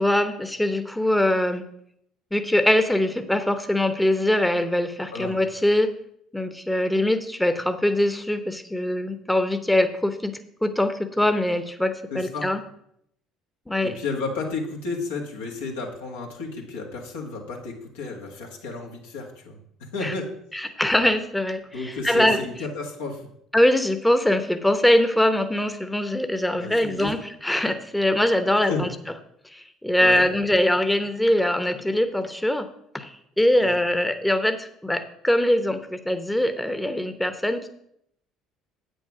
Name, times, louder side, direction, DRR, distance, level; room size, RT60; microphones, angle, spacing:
voice 1, 0.0-1.6 2.3-5.9 6.3-12.6 13.7-13.9 20.0-20.1 20.5-22.4 23.5-28.9 29.5-32.7 32.9-37.7, left 1 dB, 5° left, 9 dB, 0.9 m, -22 dB
voice 2, 12.1-12.5 13.8-19.6 19.9-20.3 21.7-23.3 26.6-27.1 28.7-28.8 30.0-30.2 33.6-33.8, left 3 dB, 85° left, 0 dB, 1.8 m, -32 dB
8.1 x 6.4 x 6.0 m, 0.72 s
hypercardioid pair, 60°, 0 cm